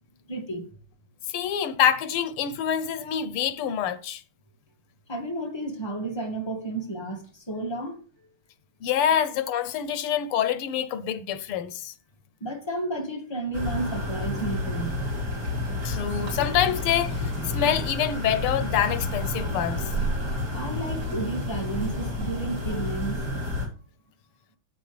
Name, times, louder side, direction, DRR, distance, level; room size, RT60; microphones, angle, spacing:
voice 1, 0.3-0.7 5.1-8.0 12.4-15.0 20.5-23.2, right 2 dB, 10° left, 2.2 m, -32 dB
voice 2, 1.3-4.2 8.8-11.9 15.8-19.8, left 9 dB, 85° left, 1.7 m, -26 dB
sound 1, 13.5-23.7, left 1 dB, 45° right, 5.1 m, -30 dB
14.0 x 8.2 x 3.3 m
omnidirectional pair, 2.4 m